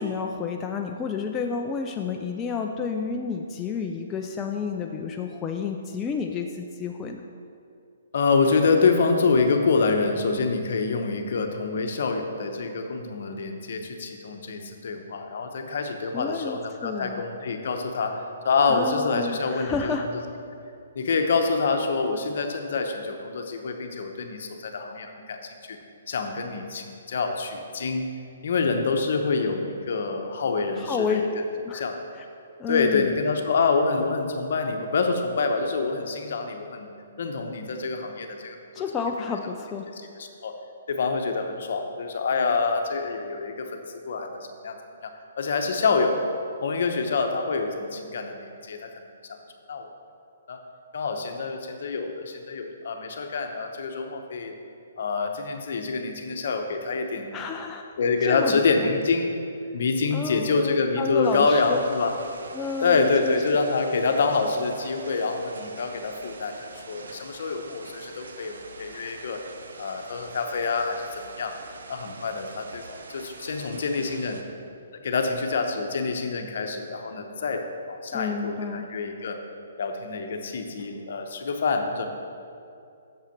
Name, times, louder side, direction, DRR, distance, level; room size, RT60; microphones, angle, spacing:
voice 1, 0.0-7.2 16.1-17.2 18.7-20.1 30.8-31.2 31.6-31.8 32.2-32.3 32.6-33.2 38.7-39.9 57.3-57.9 58.2-58.9 60.1-61.8 62.5-63.4 78.1-78.9, left 5 dB, 15° left, 2 dB, 0.3 m, -30 dB
voice 2, 8.1-19.9 20.9-25.8 26.1-28.1 28.4-31.3 31.7-32.0 32.7-36.9 37.2-38.6 40.2-40.6 40.9-44.8 45.0-45.1 45.4-46.2 46.6-49.1 49.7-49.9 50.5-50.6 50.9-54.5 55.0-57.4 58.0-59.3 59.7-62.1 62.8-69.4 69.8-71.6 71.9-74.4 75.0-79.4 79.8-82.1, left 4 dB, 60° left, 5 dB, 0.8 m, -26 dB
sound 1, 61.2-74.4, right 3 dB, 85° right, 0.7 m, -44 dB
7.0 x 5.7 x 5.8 m, 2.5 s
hypercardioid pair, 160°, 0 cm